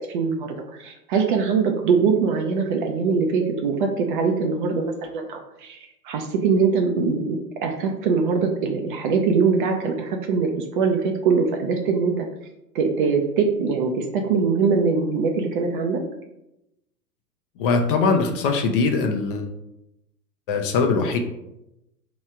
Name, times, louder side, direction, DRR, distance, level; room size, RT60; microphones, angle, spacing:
voice 1, 0.0-5.8 6.0-12.3 12.7-16.0, right 5 dB, 35° right, 3 dB, 0.5 m, -22 dB
voice 2, 17.6-19.5 20.5-21.2, left 4 dB, 35° left, 4 dB, 0.5 m, -21 dB
3.1 x 3.0 x 4.7 m, 0.87 s
figure-of-eight pair, 100°, 49 cm